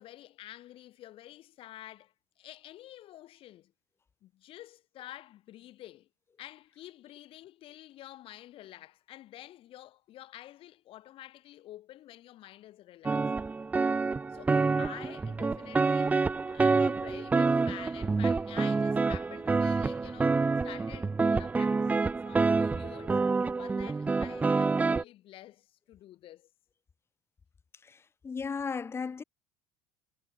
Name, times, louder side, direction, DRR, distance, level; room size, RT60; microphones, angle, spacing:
voice 1, 0.0-3.7 4.2-6.1 6.4-13.3 14.3-23.2 23.6-26.5, left 14 dB, 55° left, 3.2 m, -49 dB
sound 1, 13.0-25.0, right 4 dB, 15° right, 0.3 m, -27 dB
voice 2, 28.2-29.2, left 5 dB, 20° left, 0.7 m, -34 dB
hypercardioid pair, 80°, 11 cm